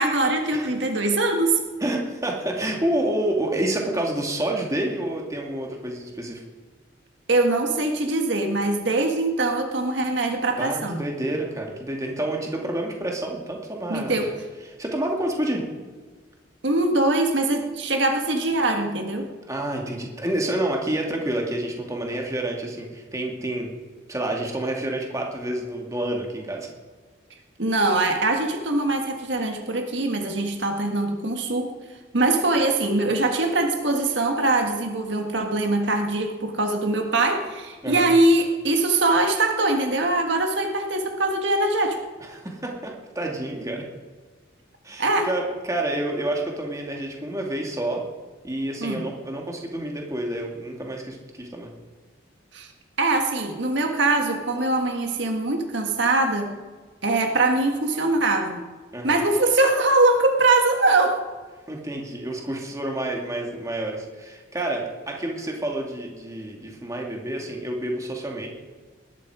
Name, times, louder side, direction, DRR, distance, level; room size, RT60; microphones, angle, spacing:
voice 1, 0.0-1.6 7.3-11.0 13.9-14.3 16.6-19.3 27.6-31.7 32.1-42.0 45.0-45.3 48.8-49.0 52.5-52.7 53.0-56.5 57.0-58.6 59.0-61.2, right 2 dB, 70° right, 3 dB, 1.7 m, -22 dB
voice 2, 1.8-6.4 10.6-14.3 14.8-15.6 19.5-23.7 24.1-26.7 37.8-38.1 42.3-43.8 44.8-48.0 48.4-51.7 58.9-59.2 61.7-68.5, right 1 dB, 15° right, 0 dB, 2.5 m, -28 dB
19.5 x 12.5 x 5.0 m, 1.4 s
head